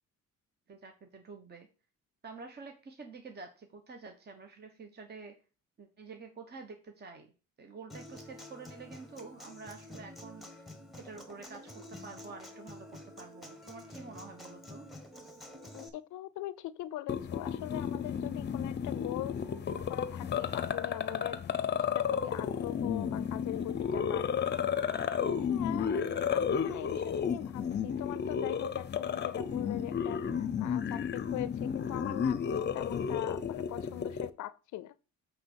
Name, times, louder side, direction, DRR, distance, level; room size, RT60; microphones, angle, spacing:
voice 1, 0.7-1.7 2.2-5.3 5.8-7.3 7.6-10.7 11.0-14.9, right 4 dB, 35° right, 1.0 m, -48 dB
Human voice / Acoustic guitar, 7.9-15.9, left 1 dB, ahead, 1.3 m, -49 dB
voice 2, 15.7-21.4 21.9-24.3 25.2-35.0, left 15 dB, 75° left, 0.5 m, -41 dB
sound 1, 17.1-34.3, left 7 dB, 35° left, 0.6 m, -32 dB
7.8 x 3.3 x 6.4 m
cardioid pair, 90°, 30 cm